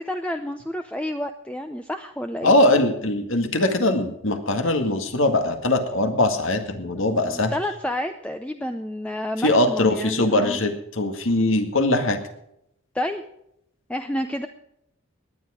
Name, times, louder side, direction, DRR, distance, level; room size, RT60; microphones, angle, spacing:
voice 1, 0.0-2.5 7.2-10.6 12.9-13.2 13.9-14.5, left 1 dB, 5° left, 6 dB, 0.5 m, -29 dB
voice 2, 2.4-7.5 9.4-12.2, left 2 dB, 70° left, 6 dB, 2.0 m, -21 dB
18.5 x 10.5 x 5.0 m, 0.76 s
head